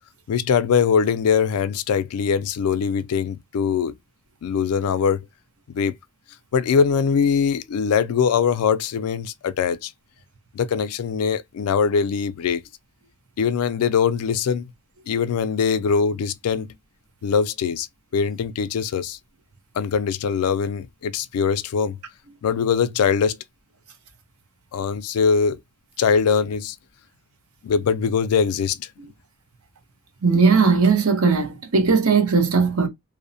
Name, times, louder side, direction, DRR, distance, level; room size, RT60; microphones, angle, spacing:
voice 1, 0.3-4.0 4.4-5.2 5.7-5.9 6.5-9.9 10.5-12.6 13.4-14.6 15.1-16.7 17.2-17.9 18.1-19.2 19.8-22.0 22.4-23.4 24.7-25.6 26.0-26.8 27.6-28.9, left 6 dB, 80° left, 0.3 m, -22 dB
voice 2, 30.2-32.9, right 5 dB, 75° right, 0.8 m, -18 dB
2.6 x 2.0 x 2.6 m
head